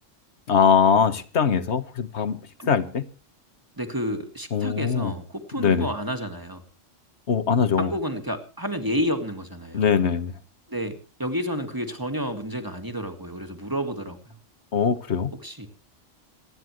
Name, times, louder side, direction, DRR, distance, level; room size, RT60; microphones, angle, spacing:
voice 1, 0.5-2.4 2.7-3.0 4.5-5.1 5.6-5.9 7.3-7.9 9.7-10.4 14.7-15.4, left 6 dB, 60° left, 13 dB, 1.4 m, -22 dB
voice 2, 3.8-6.6 7.8-9.8 10.7-14.2 15.4-15.7, equal, 15° right, 7 dB, 2.0 m, -30 dB
27.5 x 10.0 x 3.1 m, 0.35 s
omnidirectional pair, 1.3 m